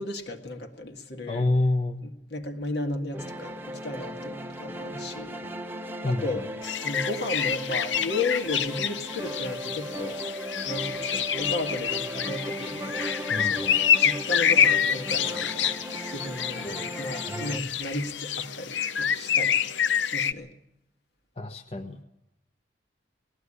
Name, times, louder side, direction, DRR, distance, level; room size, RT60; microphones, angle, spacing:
voice 1, 0.0-1.6 2.0-5.4 6.0-6.5 6.8-10.2 10.7-13.0 13.4-15.8 16.1-19.6 20.0-20.5, left 2 dB, 60° left, 1.9 m, -34 dB
voice 2, 1.3-2.0 6.0-6.2 13.3-13.8 16.6-17.6 21.4-22.0, left 2 dB, 30° left, 1.0 m, -29 dB
sound 1, 3.1-17.6, equal, 10° right, 0.9 m, -37 dB
sound 2, 6.6-20.3, left 8 dB, 75° left, 0.8 m, -27 dB
19.5 x 14.5 x 9.9 m
head